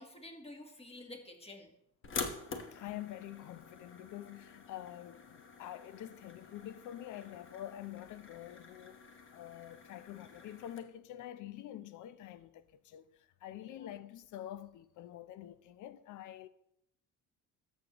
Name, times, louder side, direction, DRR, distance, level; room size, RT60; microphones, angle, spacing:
voice 1, 0.0-1.7 13.5-13.9, left 1 dB, 20° left, 1.4 m, -50 dB
sound 1, 2.0-10.8, left 4 dB, 40° left, 1.1 m, -47 dB
voice 2, 2.7-9.0 9.3-16.5, left 12 dB, 65° left, 0.6 m, -47 dB
13.0 x 6.5 x 3.0 m
cardioid pair, 110°, 32 cm